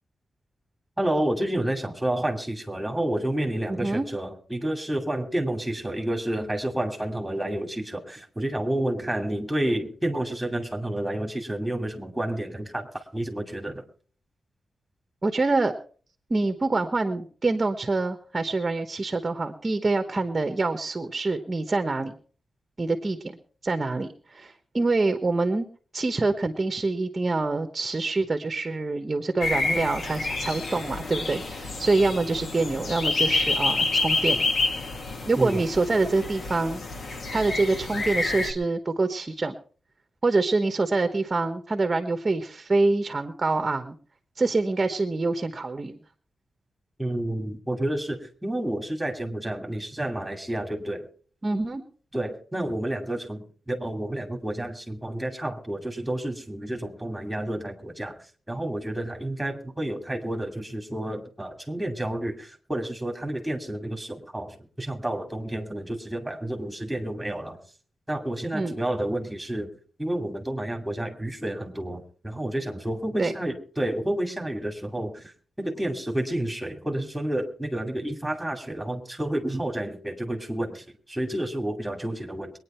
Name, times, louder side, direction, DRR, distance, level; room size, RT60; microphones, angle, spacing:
voice 1, 1.0-13.8 35.4-35.7 47.0-51.1 52.1-58.2 58.5-67.6 68.1-69.7 70.0-75.3 75.6-82.5, right 1 dB, 5° right, 3 dB, 2.5 m, -30 dB
voice 2, 3.7-4.1 15.2-15.7 16.3-22.1 22.8-23.3 23.6-25.7 25.9-34.4 35.2-36.8 37.3-39.5 40.2-44.0 44.4-46.0 51.4-51.8 68.5-68.8 73.2-73.3, right 3 dB, 25° right, 7 dB, 1.1 m, -25 dB
sound 1, 29.4-38.5, left 3 dB, 50° left, 2.0 m, -28 dB
22.0 x 9.8 x 4.5 m, 0.44 s
wide cardioid pair, 155°, 0 cm